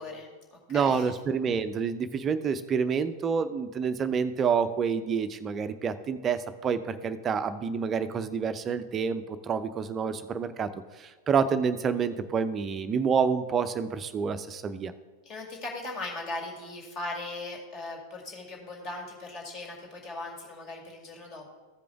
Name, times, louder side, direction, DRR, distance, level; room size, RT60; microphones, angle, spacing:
voice 1, 0.0-1.0 15.3-21.5, left 2 dB, 35° left, 1 dB, 2.1 m, -39 dB
voice 2, 0.7-10.7 11.0-14.9, right 6 dB, 25° right, 11 dB, 0.5 m, -28 dB
14.5 x 5.1 x 3.4 m, 1.3 s
figure-of-eight pair, 90°, 0 cm